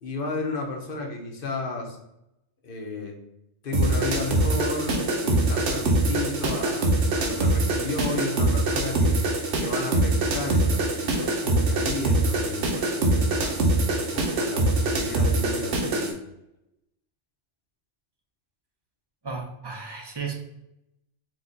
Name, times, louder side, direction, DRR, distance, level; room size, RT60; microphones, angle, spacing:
voice 1, 0.0-2.0 2.6-3.2 3.6-6.9 7.2-9.2 9.6-13.5 14.0-16.2, left 3 dB, 55° left, 1 dB, 0.9 m, -33 dB
sound 1, 3.7-16.1, right 2 dB, 85° right, 1.1 m, -24 dB
voice 2, 19.2-20.3, right 5 dB, 30° right, 2 dB, 0.5 m, -34 dB
4.7 x 2.3 x 3.8 m, 0.86 s
omnidirectional pair, 1.2 m